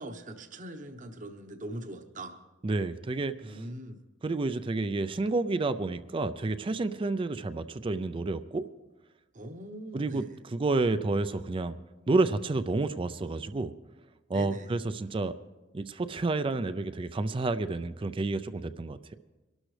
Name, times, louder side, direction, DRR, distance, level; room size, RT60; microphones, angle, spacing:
voice 1, 0.0-2.4 3.4-4.0 9.3-10.3 14.3-14.7, right 1 dB, 45° right, 6 dB, 1.0 m, -41 dB
voice 2, 2.6-3.6 4.2-8.6 9.9-11.8 12.1-13.7 14.3-15.3 15.7-19.2, right 3 dB, 30° right, 12 dB, 0.4 m, -30 dB
23.5 x 12.5 x 3.3 m, 1.1 s
head